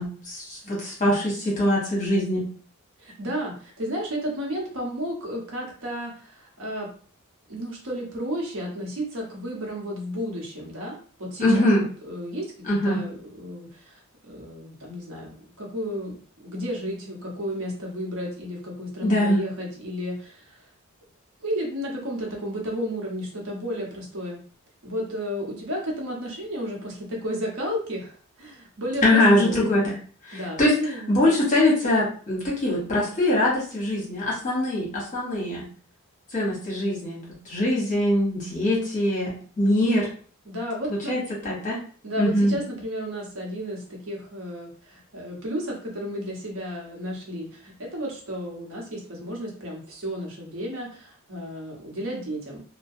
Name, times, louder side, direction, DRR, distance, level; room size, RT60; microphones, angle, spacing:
voice 1, 0.0-2.4 11.4-11.9 12.6-13.0 19.0-19.4 29.0-29.9 30.3-30.7 31.1-35.6 36.3-40.1 41.1-41.8 42.2-42.5, left 1 dB, 35° left, -5 dB, 1.1 m, -22 dB
voice 2, 3.0-6.9 7.5-14.0 14.3-20.6 21.4-24.4 24.8-29.8 30.3-31.1 40.5-41.2 42.0-52.6, equal, 65° right, -1 dB, 0.9 m, -33 dB
2.3 x 2.1 x 2.6 m, 0.44 s
head